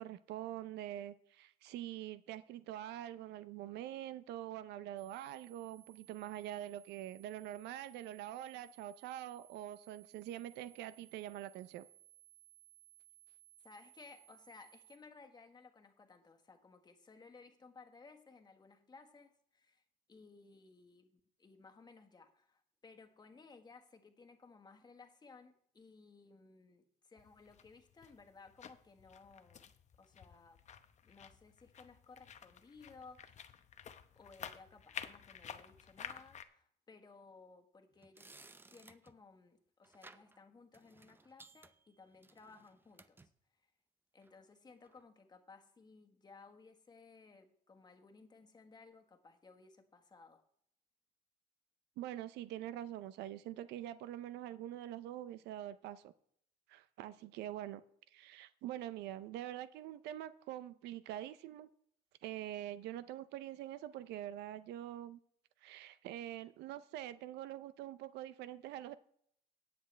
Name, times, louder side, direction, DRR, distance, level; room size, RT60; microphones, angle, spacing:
voice 1, 0.0-11.9 52.0-56.1 56.7-57.8 58.1-61.7 62.2-65.2 65.6-68.9, right 12 dB, 85° right, 14 dB, 0.6 m, -45 dB
sound 1, 5.0-15.0, right 13 dB, 55° right, 5.5 m, -63 dB
voice 2, 13.6-19.8 20.1-29.7 30.0-30.6 31.0-33.5 33.8-33.9 34.1-38.3 38.7-43.3 44.1-50.4, left 4 dB, 25° left, 5 dB, 1.5 m, -59 dB
sound 2, 27.2-36.4, left 8 dB, 45° left, 0.8 m, -51 dB
sound 3, 37.9-39.2 39.8-40.4 40.7-43.3 44.2-44.4 44.8-45.0, right 3 dB, 10° right, 0.6 m, -60 dB
18.0 x 6.8 x 3.3 m, 0.67 s
cardioid pair, 110°, 17 cm